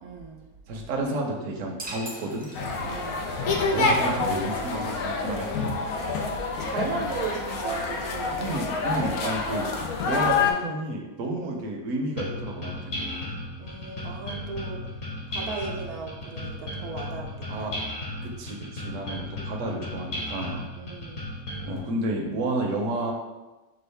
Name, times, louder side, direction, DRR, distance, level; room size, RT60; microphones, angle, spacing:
voice 1, 0.0-0.5 2.8-3.3 6.6-8.8 11.3-11.6 13.6-14.9 15.3-17.9 20.8-21.3, right 5 dB, 90° right, 0 dB, 1.2 m, -36 dB
voice 2, 0.7-2.5 3.7-5.5 8.4-9.7 10.0-13.3 17.5-17.8 18.2-20.6 21.6-23.1, right 1 dB, 70° right, 0 dB, 1.0 m, -31 dB
sound 1, 1.8-3.3, right 1 dB, 10° right, 0.6 m, -40 dB
sound 2, 2.5-10.5, left 4 dB, 85° left, 1.1 m, -27 dB
sound 3, 12.2-21.8, left 1 dB, 55° left, 1.5 m, -35 dB
6.2 x 2.4 x 3.3 m, 1.1 s
omnidirectional pair, 1.5 m